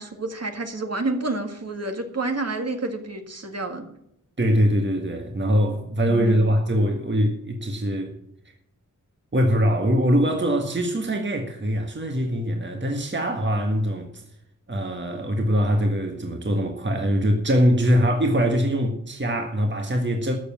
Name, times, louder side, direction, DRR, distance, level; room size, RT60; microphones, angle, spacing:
voice 1, 0.0-3.9 6.1-6.5, right 2 dB, 50° right, 1.9 m, -29 dB
voice 2, 4.4-8.2 9.3-14.2 14.7-20.4, equal, 35° right, 1.6 m, -22 dB
13.0 x 7.1 x 7.3 m
wide cardioid pair, 90°, 33 cm